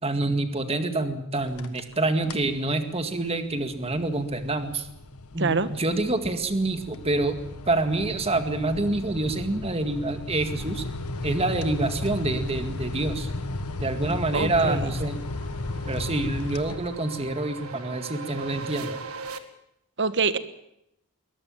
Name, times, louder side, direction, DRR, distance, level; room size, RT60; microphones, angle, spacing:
voice 1, 0.0-4.9 5.3-7.4 7.7-10.8 11.2-13.3 13.8-15.2 15.9-19.0, right 2 dB, 25° right, 8 dB, 2.0 m, -27 dB
sound 1, 1.4-1.9 2.2-2.6 3.0-17.3, left 2 dB, 80° left, 1.6 m, -35 dB
voice 2, 5.4-5.7 14.3-14.9 20.0-20.4, right 4 dB, 55° right, 13 dB, 1.4 m, -25 dB
sound 2, 13.0-19.4, right 3 dB, 75° right, 1.8 m, -41 dB
22.5 x 19.5 x 7.3 m, 0.80 s
head